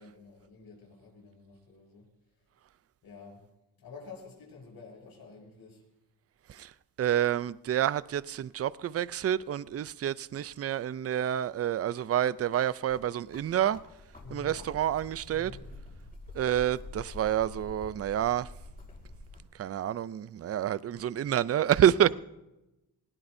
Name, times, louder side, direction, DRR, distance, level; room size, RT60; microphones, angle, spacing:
voice 1, 0.0-2.1 3.0-3.4 3.8-5.8 14.2-14.6 15.3-15.8 21.8-22.1, left 4 dB, 75° left, 6.3 m, -49 dB
voice 2, 7.0-13.8 14.3-15.5 16.3-18.5 19.6-22.1, right 10 dB, 40° right, 0.4 m, -28 dB
sound 1, 12.9-19.4, left 2 dB, 25° left, 5.3 m, -47 dB
19.5 x 17.5 x 2.7 m
cardioid pair, 100°, 37 cm